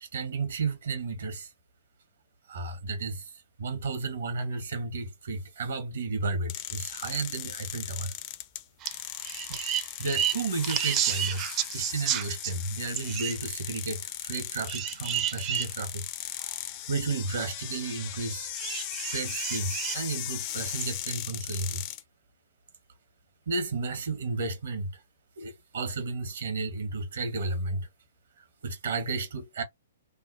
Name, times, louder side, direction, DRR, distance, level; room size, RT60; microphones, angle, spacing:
voice 1, 0.0-1.5 2.5-3.3 3.6-8.1 9.5-9.6 10.0-16.1 16.9-18.5 19.1-21.8 23.5-25.0 25.4-27.9 28.6-29.6, right 3 dB, 65° right, 1.0 m, -33 dB
sound 1, 6.5-22.0, left 13 dB, 35° left, 0.4 m, -38 dB
sound 2, 8.8-9.0 9.2-12.5 12.9-13.4 14.7-15.7 16.4-16.5 18.5-20.0 20.7-20.8, right 10 dB, 30° right, 0.4 m, -31 dB
2.7 x 2.0 x 2.6 m
figure-of-eight pair, 120°, 0 cm